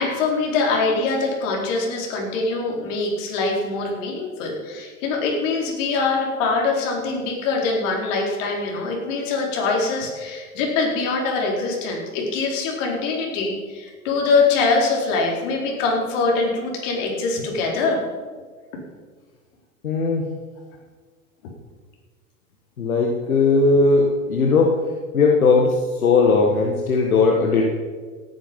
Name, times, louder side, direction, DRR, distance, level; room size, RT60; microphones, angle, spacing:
voice 1, 0.0-18.0, left 3 dB, 60° left, -1 dB, 4.6 m, -23 dB
voice 2, 19.8-20.3 22.8-24.8 25.1-27.6, left 4 dB, 85° left, 0 dB, 1.8 m, -18 dB
18.0 x 10.0 x 5.4 m, 1.5 s
hypercardioid pair, 90°, 42 cm